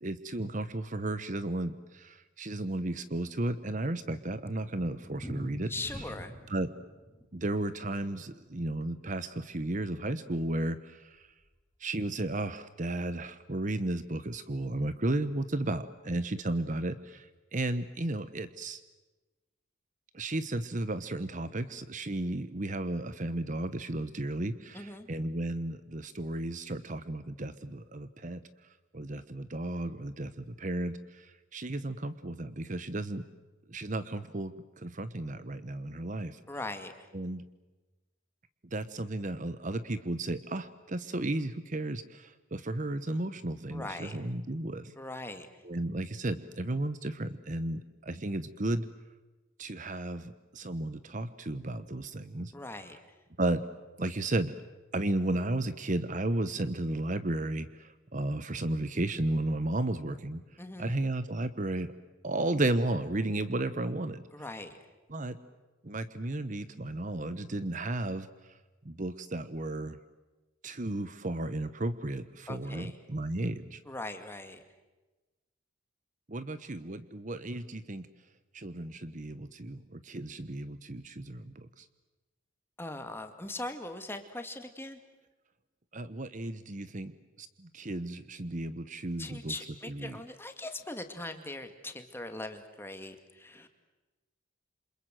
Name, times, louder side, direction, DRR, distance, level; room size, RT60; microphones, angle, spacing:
voice 1, 0.0-5.7 6.5-6.7 7.3-11.3 11.8-17.3 17.5-18.8 20.1-28.4 28.9-33.2 33.7-36.4 37.1-37.4 38.7-44.9 45.6-48.9 49.6-52.5 53.4-53.6 54.0-54.5 54.9-60.4 60.8-61.9 62.2-64.2 65.1-65.4 65.8-68.3 68.8-70.0 70.6-73.8 76.3-78.1 78.5-81.8 85.9-89.5 89.9-90.2, right 1 dB, 40° right, 12 dB, 1.0 m, -34 dB
Thunder, 4.0-9.6 9.8-9.9 10.2-10.3 10.6-10.7 11.2-11.6, equal, 5° right, 4.9 m, -47 dB
voice 2, 5.7-6.3 24.7-25.1 36.5-37.1 43.7-44.2 45.0-45.5 52.5-53.0 60.6-60.9 64.3-64.8 72.5-73.0 73.8-74.6 82.8-85.0 89.2-93.7, left 2 dB, 10° left, 7 dB, 2.2 m, -40 dB
28.5 x 27.0 x 7.8 m, 1.2 s
head